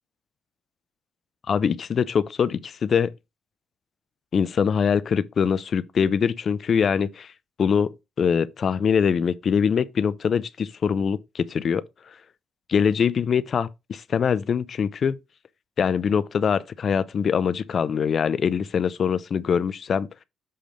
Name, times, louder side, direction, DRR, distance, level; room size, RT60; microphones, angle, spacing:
voice 1, 1.5-3.1 4.3-7.3 7.6-7.9 8.2-11.8 12.7-15.2 15.8-20.1, left 7 dB, 50° left, 0.6 m, -23 dB
7.8 x 3.3 x 5.1 m
cardioid pair, 90°, 0 cm